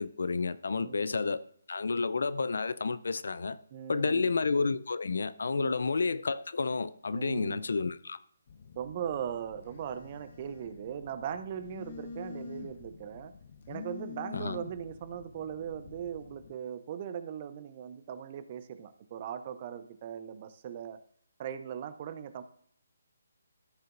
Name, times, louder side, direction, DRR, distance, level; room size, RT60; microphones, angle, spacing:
voice 1, 0.0-3.6 3.9-8.2 14.3-14.6, left 4 dB, 70° left, 0.5 m, -30 dB
voice 2, 0.8-1.1 3.7-4.3 5.5-5.7 7.1-7.6 8.8-13.3 13.7-21.0 21.4-22.4, right 8 dB, 35° right, 0.7 m, -39 dB
Telephone, 8.5-16.5, left 6 dB, 50° left, 0.9 m, -47 dB
14.0 x 6.5 x 2.6 m
figure-of-eight pair, 150°, 0 cm